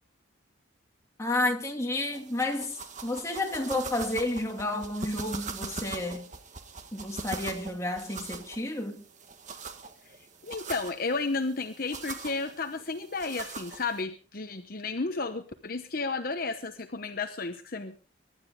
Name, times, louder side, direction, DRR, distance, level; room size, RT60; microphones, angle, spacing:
voice 1, 1.2-6.3 6.9-9.0, left 2 dB, 15° left, 2.4 m, -31 dB
sound 1, 2.0-14.0, right 4 dB, 40° right, 1.6 m, -42 dB
voice 2, 10.4-18.0, left 3 dB, 45° left, 1.0 m, -32 dB
23.0 x 12.0 x 3.7 m
head